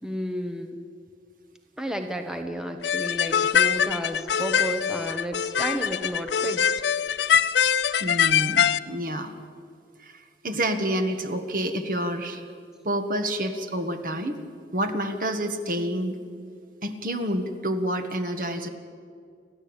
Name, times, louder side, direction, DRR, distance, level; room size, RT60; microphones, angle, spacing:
voice 1, 0.0-0.8 1.8-6.7, equal, 5° right, 5 dB, 1.1 m, -32 dB
sound 1, 2.8-8.8, left 8 dB, 85° left, 0.6 m, -23 dB
voice 2, 8.0-9.3 10.0-12.4 12.8-14.4 14.7-16.2 16.8-18.7, right 1 dB, 50° right, 7 dB, 1.6 m, -28 dB
30.0 x 11.5 x 8.9 m, 2.3 s
head